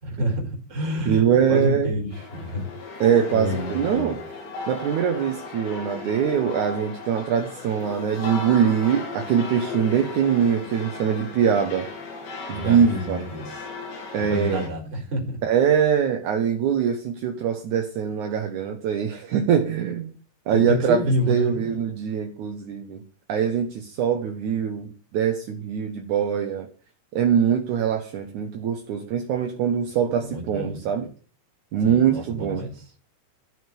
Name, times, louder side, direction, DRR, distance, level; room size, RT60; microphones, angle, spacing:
voice 1, 0.0-2.6 3.3-4.2 12.5-13.6 14.2-15.4 20.5-21.7 30.2-31.0 31.8-32.8, equal, 20° right, -1 dB, 3.7 m, -28 dB
voice 2, 1.1-1.9 3.0-4.2 4.7-11.9 12.5-13.2 14.1-14.6 15.4-20.1 20.5-21.0 21.3-23.0 23.3-24.9 25.1-26.7 27.1-31.1 31.7-32.7, right 8 dB, 65° right, 4 dB, 2.1 m, -23 dB
sound 1, 2.1-14.7, left 3 dB, 85° left, 5.3 m, -36 dB
13.5 x 6.4 x 9.1 m, 0.42 s
omnidirectional pair, 4.9 m